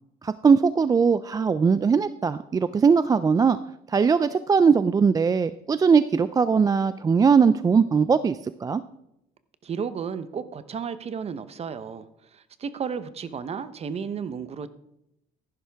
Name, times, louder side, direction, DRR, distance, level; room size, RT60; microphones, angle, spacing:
voice 1, 0.2-3.6 3.9-8.8, right 5 dB, 20° right, 13 dB, 0.3 m, -20 dB
voice 2, 9.6-14.7, right 6 dB, 40° right, 13 dB, 0.8 m, -33 dB
15.0 x 11.0 x 3.5 m, 0.83 s
cardioid pair, 110°, 17 cm